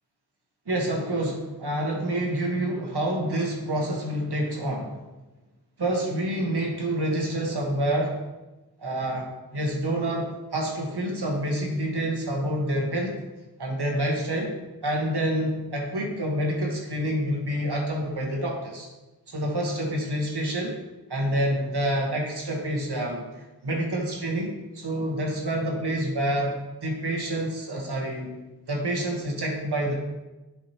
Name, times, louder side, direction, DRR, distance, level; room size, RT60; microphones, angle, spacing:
voice 1, 0.6-5.0 5.8-8.2 8.8-13.1 13.6-14.5 14.8-18.9 19.3-20.7 21.1-26.6 26.8-28.4 28.7-29.9, right 1 dB, 85° right, 0 dB, 1.4 m, -27 dB
8.2 x 4.9 x 2.9 m, 1.1 s
wide cardioid pair, 55°, 39 cm